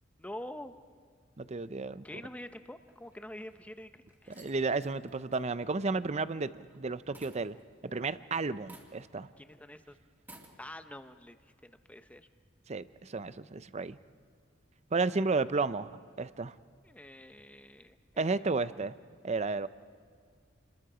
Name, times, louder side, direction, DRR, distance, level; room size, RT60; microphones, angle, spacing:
voice 1, 0.2-0.7 2.0-4.5 9.4-10.0 10.6-11.4 11.6-12.3 16.8-18.2, left 1 dB, 5° left, 9 dB, 0.8 m, -46 dB
voice 2, 1.4-2.0 4.3-7.6 7.8-9.3 12.7-14.0 14.9-16.5 18.2-18.9 19.2-19.7, right 3 dB, 35° right, 14 dB, 0.6 m, -32 dB
sound 1, 2.9-3.6 4.1-6.8 7.1-8.2 8.6-9.2 9.5-9.6 10.2-10.6, right 1 dB, 10° right, 2.6 m, -56 dB
29.5 x 21.5 x 5.0 m, 2.1 s
head